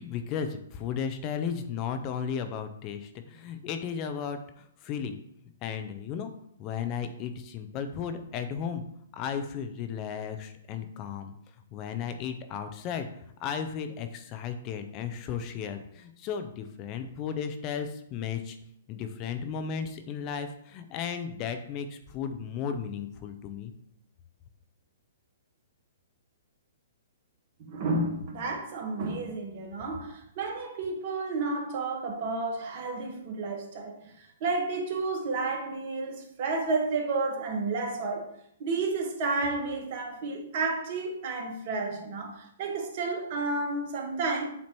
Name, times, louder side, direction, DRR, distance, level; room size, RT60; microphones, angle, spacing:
voice 1, 0.0-4.4 4.8-5.2 5.6-6.3 6.6-8.8 9.1-11.3 11.7-13.1 13.4-18.6 18.9-23.7, left 7 dB, 35° left, 8 dB, 0.6 m, -34 dB
voice 2, 27.6-34.0 34.4-38.3 38.6-44.4, right 3 dB, 50° right, 2 dB, 1.4 m, -31 dB
7.5 x 2.8 x 4.5 m, 0.70 s
hypercardioid pair, 130°, 0 cm